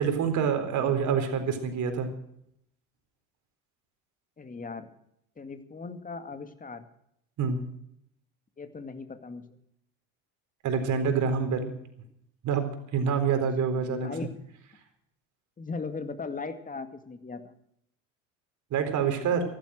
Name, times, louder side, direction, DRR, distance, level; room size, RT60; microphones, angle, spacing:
voice 1, 0.0-2.1 7.4-7.6 10.6-11.7 12.4-14.1 18.7-19.4, right 6 dB, 50° right, 7 dB, 4.1 m, -26 dB
voice 2, 4.4-4.9 5.4-6.9 8.6-9.6 13.3-13.4 13.7-14.4 15.6-17.5, left 4 dB, 20° left, 9 dB, 2.1 m, -38 dB
15.0 x 12.0 x 6.3 m, 0.74 s
hypercardioid pair, 80°, 37 cm